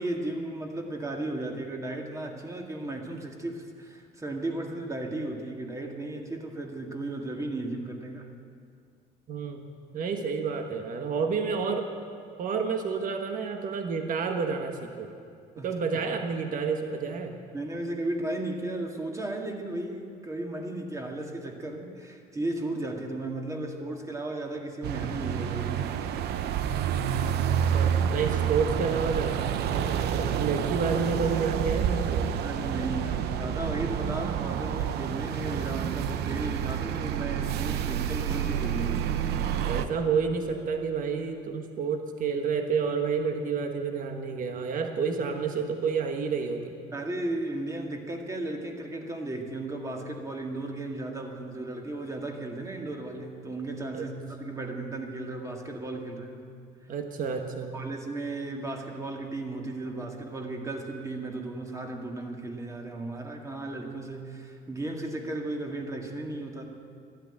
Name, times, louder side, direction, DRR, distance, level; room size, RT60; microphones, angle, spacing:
voice 1, 0.0-8.4 15.6-15.7 17.5-26.1 32.4-39.3 46.9-56.5 57.7-66.9, right 2 dB, 20° right, 2 dB, 1.9 m, -35 dB
voice 2, 9.3-9.6 9.9-11.9 12.4-15.1 15.6-17.4 27.7-29.4 29.7-32.4 39.6-46.8 53.9-54.0 56.9-57.8, right 5 dB, 55° right, 5 dB, 1.4 m, -29 dB
sound 1, 24.8-39.9, right 9 dB, 75° right, 0.8 m, -29 dB
12.0 x 11.5 x 8.9 m, 2.3 s
cardioid pair, 110°, 17 cm